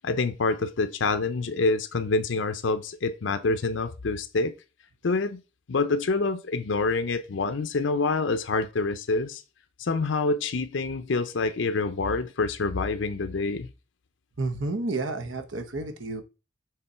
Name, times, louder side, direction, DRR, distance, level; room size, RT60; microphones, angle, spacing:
voice 1, 0.0-4.5 5.0-5.4 5.7-9.4 9.8-13.7, left 3 dB, 75° left, 0.6 m, -26 dB
voice 2, 14.4-16.2, right 2 dB, 80° right, 1.0 m, -30 dB
6.7 x 3.7 x 4.3 m
head